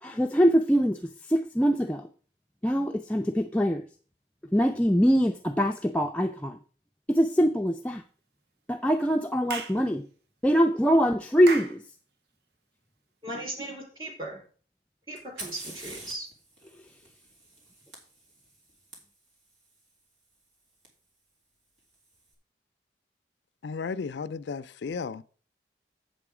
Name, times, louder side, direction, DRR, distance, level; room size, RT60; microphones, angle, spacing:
voice 1, 0.0-2.1 2.6-3.9 4.5-6.6 7.1-8.0 8.7-10.0 10.4-11.9 16.8-16.9, equal, 5° left, 0.4 m, -23 dB
Clapping / Chirp tweet, 9.5-9.8 11.5-11.8, right 4 dB, 65° right, 0.8 m, -34 dB
voice 2, 13.2-14.4 15.1-16.3, right 1 dB, 25° right, 3.5 m, -37 dB
Fire, 15.2-19.0 20.8-20.9 21.8-22.2, right 2 dB, 85° right, 2.9 m, -46 dB
voice 3, 23.6-25.2, left 5 dB, 75° left, 0.4 m, -34 dB
7.9 x 7.6 x 4.9 m
head